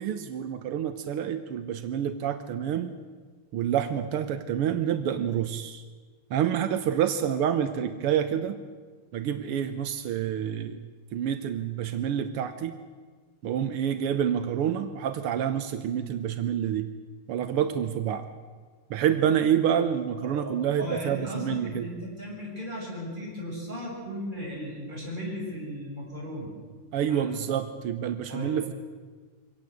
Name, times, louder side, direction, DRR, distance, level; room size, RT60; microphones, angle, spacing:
voice 1, 0.0-2.9 3.5-5.8 6.3-8.6 9.1-10.8 11.1-12.7 13.4-16.9 17.3-18.3 18.9-21.9 26.9-28.7, right 9 dB, 85° right, 9 dB, 1.9 m, -28 dB
voice 2, 20.2-26.5 27.1-27.2 28.3-28.6, equal, 20° right, -3 dB, 7.2 m, -36 dB
24.0 x 18.0 x 7.9 m, 1.5 s
omnidirectional pair, 2.4 m